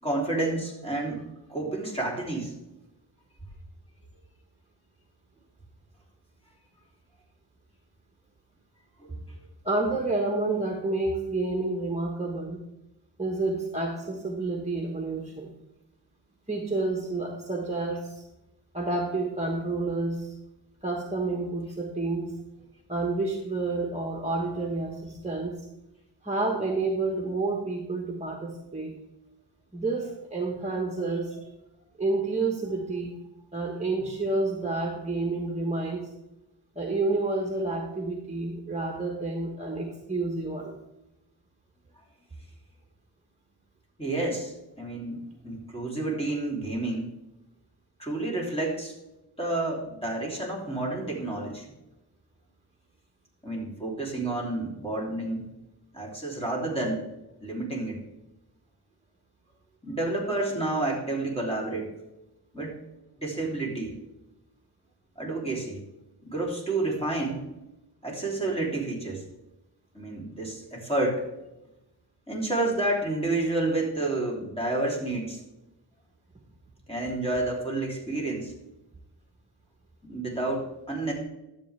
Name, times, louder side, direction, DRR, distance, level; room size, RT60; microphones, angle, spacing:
voice 1, 0.0-2.5 9.0-9.2 44.0-47.1 48.0-48.9 49.4-51.6 53.4-55.4 55.9-57.0 57.4-58.0 59.8-61.9 62.5-62.7 63.2-64.0 65.2-65.8 66.2-67.5 68.0-69.2 69.9-71.2 72.3-75.4 76.9-78.5 80.0-81.1, right 2 dB, 15° left, -3 dB, 3.3 m, -30 dB
voice 2, 9.6-12.6 13.2-15.5 16.5-18.2 18.7-20.3 20.8-22.3 22.9-25.6 26.2-28.9 29.7-31.4 32.0-33.2 33.5-36.1 36.7-40.8, right 2 dB, 15° right, 1 dB, 1.4 m, -29 dB
12.5 x 7.5 x 3.4 m, 0.93 s
wide cardioid pair, 80°, 42 cm